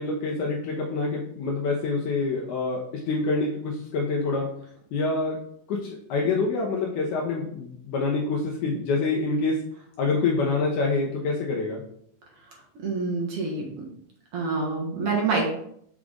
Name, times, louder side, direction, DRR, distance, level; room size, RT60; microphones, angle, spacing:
voice 1, 0.0-2.8 3.1-4.5 4.9-5.4 5.7-9.6 10.0-11.8, left 3 dB, 70° left, -2 dB, 2.1 m, -26 dB
voice 2, 12.8-13.6 14.3-15.5, right 4 dB, 55° right, -2 dB, 1.9 m, -26 dB
6.3 x 4.8 x 3.7 m, 0.69 s
omnidirectional pair, 4.0 m